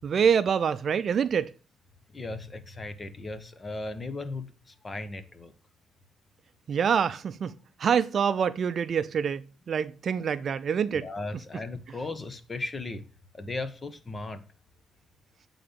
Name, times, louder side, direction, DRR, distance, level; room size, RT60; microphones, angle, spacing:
voice 1, 0.0-1.5 6.7-11.1, right 7 dB, 55° right, 0.5 m, -26 dB
voice 2, 2.1-5.5 10.9-13.0 13.3-14.4, left 2 dB, 30° left, 1.1 m, -36 dB
8.7 x 3.9 x 6.9 m
cardioid pair, 90°, 0 cm